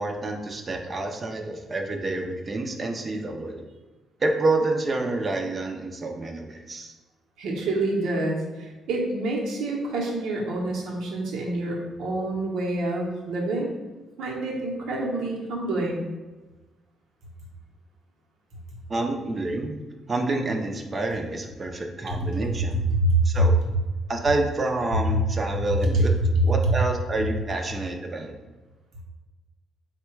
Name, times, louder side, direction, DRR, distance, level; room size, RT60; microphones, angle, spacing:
voice 1, 0.0-3.7 4.2-6.9 18.9-19.8 20.1-22.8 23.2-23.6 24.1-26.1 26.4-28.3, right 2 dB, 35° right, 3 dB, 0.5 m, -28 dB
voice 2, 7.4-13.7 14.2-16.0 23.0-23.5, right 2 dB, 80° right, -1 dB, 0.8 m, -27 dB
3.6 x 2.2 x 4.4 m, 1.2 s
cardioid pair, 90°, 0 cm